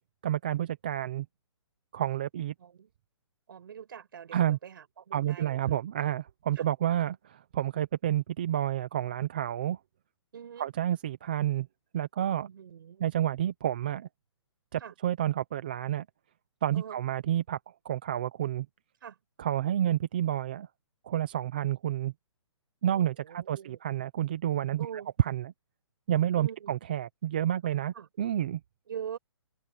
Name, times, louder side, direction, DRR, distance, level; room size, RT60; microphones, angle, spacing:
voice 1, 0.2-1.3 1.9-2.5 4.3-4.6 5.1-9.8 10.6-11.7 11.9-12.5 13.0-14.1 14.7-16.1 16.6-17.6 17.8-18.7 19.4-20.7 21.0-22.1 22.8-25.5 26.1-28.6, right 11 dB, 20° right, 0.5 m, -29 dB
voice 2, 2.6-2.9 3.5-5.6 6.6-6.7 10.3-10.7 12.4-13.1 14.8-14.9 16.7-17.0 19.0-19.2 22.8-23.8 24.8-25.1 26.4-26.7 27.9-28.1 28.9-29.2, right 8 dB, 45° right, 5.2 m, -43 dB
hypercardioid pair, 175°, 16 cm